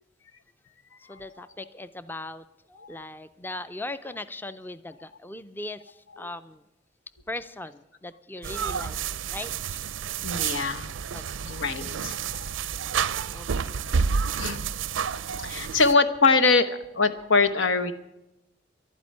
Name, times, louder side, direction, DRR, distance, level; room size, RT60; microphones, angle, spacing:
voice 1, 1.1-6.6 7.3-9.0 9.3-9.5 11.1-11.5 13.3-13.8, left 2 dB, 10° left, 14 dB, 0.4 m, -39 dB
sound 1, 8.4-15.9, right 6 dB, 85° right, 0.5 m, -30 dB
voice 2, 10.2-10.9 11.5-12.5 14.4-14.6 15.0-15.1 15.4-17.9, left 4 dB, 90° left, 9 dB, 1.1 m, -24 dB
12.0 x 9.7 x 9.5 m, 0.90 s
head